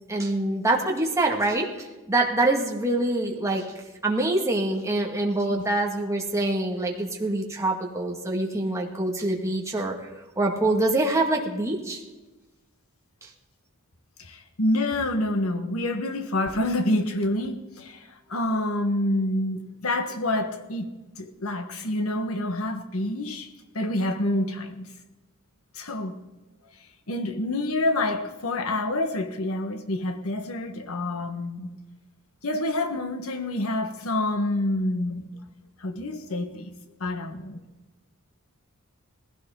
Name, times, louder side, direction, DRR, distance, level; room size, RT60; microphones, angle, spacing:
voice 1, 0.1-3.6 4.0-9.9 10.4-12.0 13.2-13.3, right 2 dB, 15° right, 1.9 m, -25 dB
voice 2, 14.2-23.5 23.7-24.9 25.7-26.2 27.1-31.7 32.4-35.3 35.8-36.7 37.0-37.6, left 1 dB, 75° left, 1.4 m, -27 dB
19.0 x 15.5 x 3.9 m
head